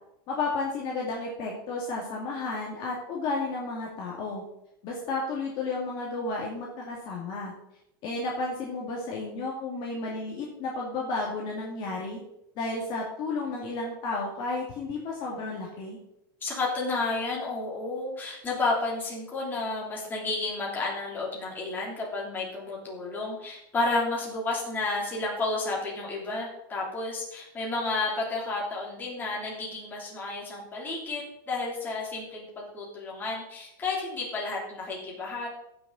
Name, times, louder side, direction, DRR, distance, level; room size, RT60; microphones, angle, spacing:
voice 1, 0.3-4.4 4.8-7.5 8.0-12.2 12.6-16.0, left 3 dB, 35° left, -2 dB, 2.2 m, -32 dB
voice 2, 16.4-35.5, left 3 dB, 15° left, -4 dB, 3.2 m, -31 dB
16.0 x 6.4 x 4.0 m, 0.83 s
supercardioid pair, 160°, 12 cm